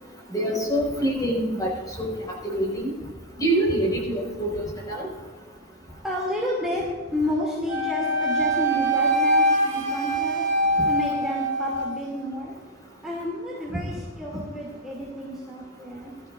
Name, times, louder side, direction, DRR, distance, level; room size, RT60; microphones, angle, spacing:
voice 1, 0.3-1.7 2.0-2.9 3.4-5.1, right 1 dB, 20° left, -2 dB, 5.3 m, -25 dB
voice 2, 6.0-10.5 10.9-12.6 13.0-16.1, equal, 5° right, -6 dB, 2.7 m, -30 dB
Wind instrument woodwind instrument, 7.7-12.0, right 1 dB, 40° right, 3.5 m, -23 dB
21.5 x 13.5 x 2.6 m, 1.4 s
head